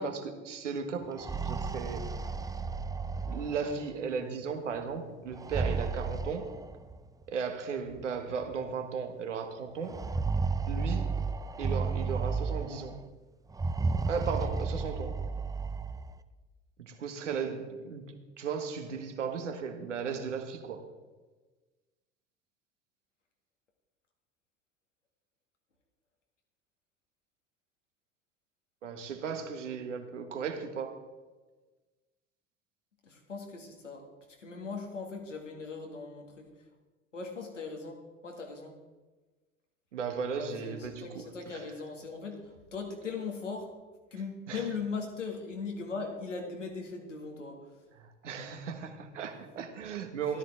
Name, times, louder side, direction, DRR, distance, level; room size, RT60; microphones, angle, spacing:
voice 1, 0.0-2.1 3.3-6.5 7.3-10.1 10.7-11.1 11.6-13.0 14.1-15.2 16.8-20.8 28.8-31.0 39.9-41.6 44.5-44.7 47.9-50.4, right 6 dB, 80° right, 1.5 m, -36 dB
sound 1, 1.0-3.9 5.3-7.0 8.0-8.1 8.4-8.5 9.8-12.9 13.5-16.1, right 4 dB, 10° right, 0.6 m, -33 dB
voice 2, 33.0-34.1 34.4-36.5 37.1-38.0 38.2-38.7 40.3-43.7 44.1-47.6 50.2-50.4, left 4 dB, 90° left, 2.2 m, -39 dB
13.5 x 13.0 x 3.7 m
figure-of-eight pair, 75°, 36 cm